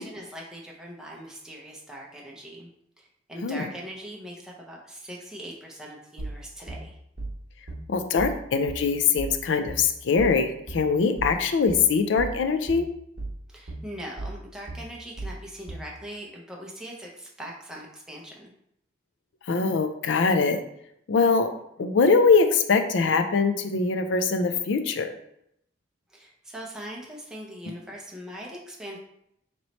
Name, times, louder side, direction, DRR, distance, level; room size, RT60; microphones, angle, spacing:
voice 1, 0.0-2.7 3.0-7.0 13.5-18.5 26.1-29.0, equal, 5° right, -3 dB, 0.6 m, -41 dB
sound 1, 6.2-16.0, right 2 dB, 45° right, 0.8 m, -37 dB
voice 2, 7.9-12.9 19.5-20.6 21.1-21.5 21.8-25.1, left 4 dB, 70° left, 7 dB, 0.4 m, -22 dB
3.1 x 3.0 x 4.1 m, 0.77 s
head